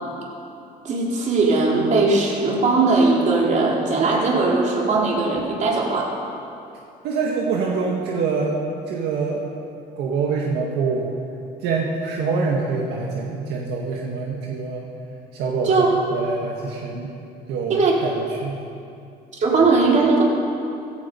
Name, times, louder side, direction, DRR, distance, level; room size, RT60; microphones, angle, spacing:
voice 1, 0.8-6.1 15.7-15.9 17.7-18.0 19.4-20.2, right 3 dB, 45° right, -2 dB, 3.9 m, -19 dB
voice 2, 7.0-8.6 8.9-9.5 10.0-11.1 11.6-14.9 15.3-17.1 17.5-18.6, right 4 dB, 80° right, -1 dB, 1.8 m, -25 dB
16.5 x 14.5 x 5.4 m, 2.6 s
cardioid pair, 110°, 17 cm